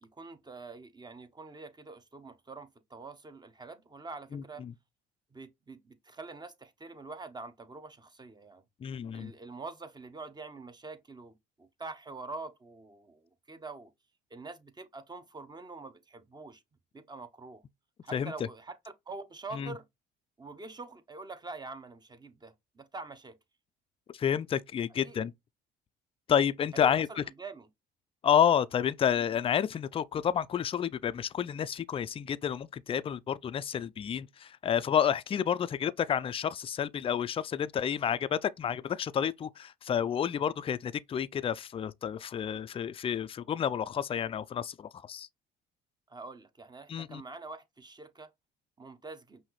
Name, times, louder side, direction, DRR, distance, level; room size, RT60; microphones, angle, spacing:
voice 1, 0.0-4.6 5.3-8.6 9.1-13.9 14.3-16.6 16.9-17.6 18.0-18.8 19.1-19.9 20.4-23.4 25.0-25.3 26.7-27.7 46.1-48.3 48.8-49.4, right 3 dB, 20° right, 0.8 m, -45 dB
voice 2, 4.3-4.7 8.8-9.3 18.1-18.3 19.5-19.7 24.1-25.3 26.3-27.1 28.2-45.3 46.9-47.2, left 8 dB, 25° left, 0.3 m, -30 dB
5.6 x 2.6 x 3.1 m
supercardioid pair, 75°, 21 cm